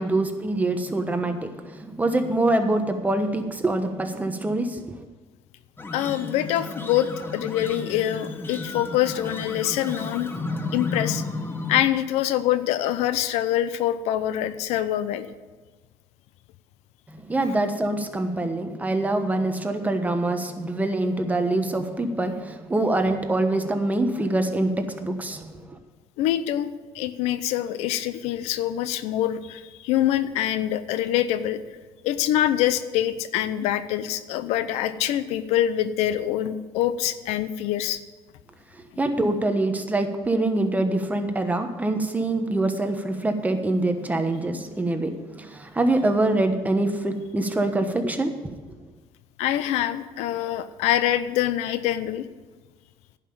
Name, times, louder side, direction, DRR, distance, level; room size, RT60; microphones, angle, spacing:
voice 1, 0.0-4.8 17.3-25.5 39.0-48.3, right 2 dB, 15° right, 6 dB, 1.2 m, -24 dB
sound 1, 5.8-11.9, left 3 dB, 20° left, 1.0 m, -33 dB
voice 2, 5.9-10.3 10.7-11.2 11.7-15.3 17.5-17.6 26.2-26.7 26.9-31.6 32.0-38.0 49.4-52.3, left 12 dB, 85° left, 13 dB, 0.6 m, -25 dB
10.5 x 5.8 x 8.7 m, 1.3 s
cardioid pair, 100°, 11 cm